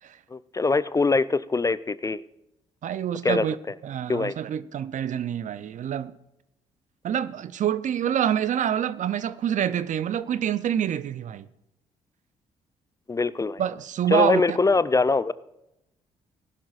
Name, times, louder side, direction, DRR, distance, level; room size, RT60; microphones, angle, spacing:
voice 1, 0.3-2.2 3.2-3.5 4.1-4.3 13.1-13.6 14.1-15.3, left 3 dB, 20° left, 0.4 m, -23 dB
voice 2, 2.8-3.6 3.8-6.1 7.0-11.5 13.6-14.6, right 9 dB, 50° right, 0.5 m, -26 dB
18.5 x 11.5 x 2.5 m
hypercardioid pair, 45°, 16 cm